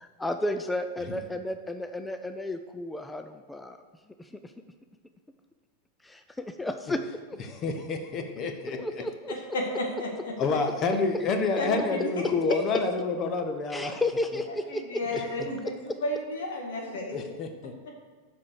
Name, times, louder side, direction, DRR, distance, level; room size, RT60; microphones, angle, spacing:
voice 1, 0.0-3.8 4.2-4.5 6.0-7.0 7.3-7.4 8.7-9.4 11.1-11.2 13.7-15.0, left 1 dB, 5° left, 7 dB, 0.5 m, -33 dB
voice 2, 7.5-9.0 10.4-14.0 15.1-15.2 17.1-17.7, left 4 dB, 30° left, 5 dB, 1.1 m, -29 dB
voice 3, 9.5-10.3 11.6-12.1 12.5-12.6 14.9-15.7 16.0-17.4, left 1 dB, 60° left, 0 dB, 1.9 m, -32 dB
7.5 x 6.1 x 6.7 m, 1.4 s
figure-of-eight pair, 90°, 0 cm